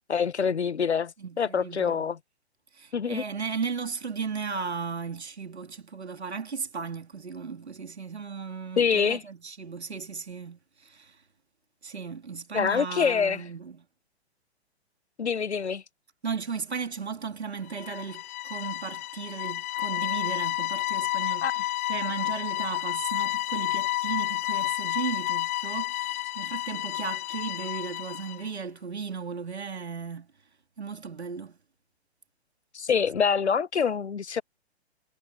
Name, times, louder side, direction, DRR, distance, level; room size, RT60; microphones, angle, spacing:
voice 1, 0.1-1.1 1.4-2.2 2.9-3.2 8.8-9.2 12.5-13.4 15.2-15.8 21.4-21.5 32.7-34.4, left 6 dB, 85° left, 0.7 m, -25 dB
voice 2, 1.2-2.1 2.7-11.2 11.8-13.8 16.2-30.3 30.8-31.6, right 5 dB, 80° right, 2.6 m, -36 dB
sound 1, 17.7-28.4, left 16 dB, 15° left, 0.4 m, -30 dB
figure-of-eight pair, 125°, 33 cm